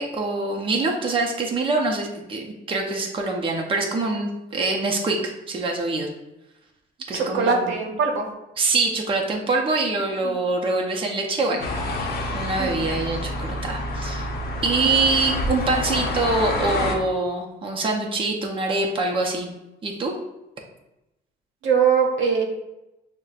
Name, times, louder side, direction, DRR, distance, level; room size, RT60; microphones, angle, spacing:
voice 1, 0.0-6.1 7.1-7.7 8.6-11.7 12.0-14.3 14.6-19.5 19.8-20.1, right 3 dB, 25° right, 0 dB, 0.6 m, -24 dB
voice 2, 7.1-8.3 10.2-10.4 12.6-12.9 21.6-22.4, right 6 dB, 80° right, 1 dB, 0.8 m, -22 dB
sound 1, 11.6-16.9, left 1 dB, 55° left, 0.7 m, -28 dB
6.4 x 2.1 x 2.4 m, 0.94 s
cardioid pair, 115°, 19 cm